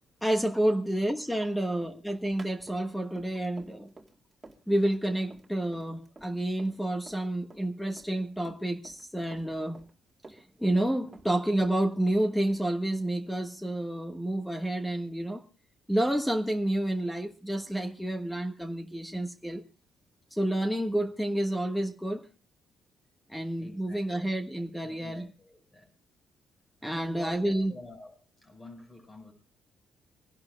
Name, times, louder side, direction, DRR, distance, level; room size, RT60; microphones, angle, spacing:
voice 1, 0.2-3.9 4.7-9.8 10.3-15.4 15.9-19.6 20.3-22.3 23.3-25.2 26.8-27.7, right 1 dB, 5° left, 1.3 m, -29 dB
voice 2, 1.3-1.8 4.5-4.7 6.7-6.8 8.2-8.3 23.6-24.1 24.8-25.9 26.8-29.3, left 1 dB, 25° left, 5.6 m, -48 dB
Run, 1.8-7.2 7.5-9.1 9.3-10.9 11.1-12.5, right 2 dB, 20° right, 2.2 m, -52 dB
25.0 x 11.0 x 2.2 m
cardioid pair, 90°, 0 cm